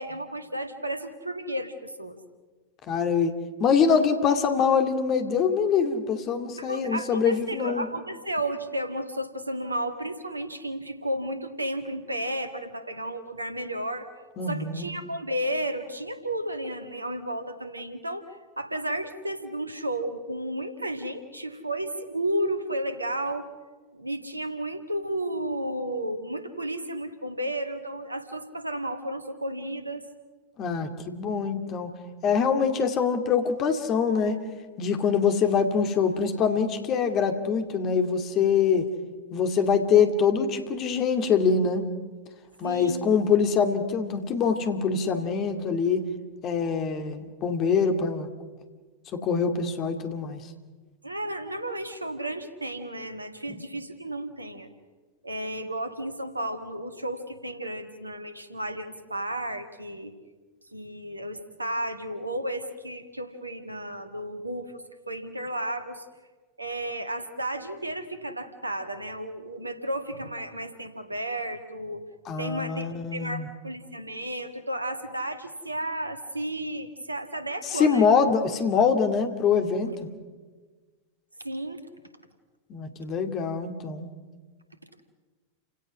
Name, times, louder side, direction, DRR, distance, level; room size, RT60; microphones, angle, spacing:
voice 1, 0.0-2.2 6.6-14.1 14.5-23.4 23.9-30.0 42.6-43.0 51.0-54.7 55.2-60.1 60.7-66.1 66.6-72.0 72.4-72.9 73.1-78.1 81.4-81.8, right 1 dB, 85° right, 9 dB, 1.9 m, -33 dB
voice 2, 2.9-3.3 3.6-7.9 14.4-14.9 30.6-31.9 32.2-34.4 34.8-38.9 39.3-41.8 42.6-46.1 46.4-48.3 49.1-50.4 72.3-73.5 77.7-79.9 82.7-84.1, left 6 dB, 35° left, 7 dB, 2.3 m, -24 dB
30.0 x 17.0 x 6.3 m, 1.4 s
figure-of-eight pair, 90°, 0 cm